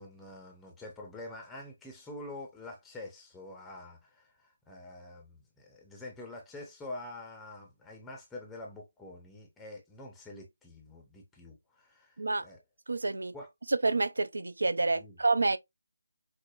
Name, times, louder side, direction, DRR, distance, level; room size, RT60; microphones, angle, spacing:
voice 1, 0.0-12.6 13.3-13.5 14.9-15.2, left 2 dB, 5° left, 0.6 m, -46 dB
voice 2, 12.9-13.3 13.7-15.6, right 3 dB, 65° right, 0.4 m, -28 dB
4.7 x 2.1 x 2.3 m
figure-of-eight pair, 155°, 0 cm